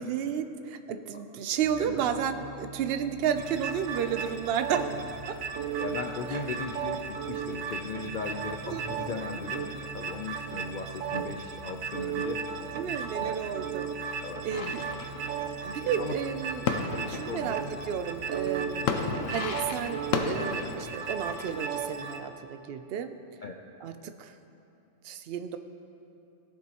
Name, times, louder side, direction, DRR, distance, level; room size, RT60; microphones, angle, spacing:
voice 1, 0.0-4.9 8.7-8.8 12.7-13.9 14.4-14.8 15.6-16.7 17.1-23.1 23.8-24.3 25.0-25.6, right 8 dB, 65° right, 9 dB, 0.6 m, -32 dB
sound 1, 1.6-20.2, right 4 dB, 15° left, 0.8 m, -47 dB
voice 2, 1.8-2.1 5.8-9.7 9.9-12.5 13.2-13.3 14.2-14.7 15.8-16.3 16.9-17.6 18.8-18.9 23.4-23.6, left 4 dB, 65° left, 2 dB, 0.5 m, -38 dB
sound 2, 3.3-22.2, right 6 dB, 80° right, 1.0 m, -35 dB
sound 3, 14.5-21.5, left 5 dB, 80° left, 1.0 m, -35 dB
18.0 x 6.9 x 2.9 m, 2.8 s
omnidirectional pair, 1.4 m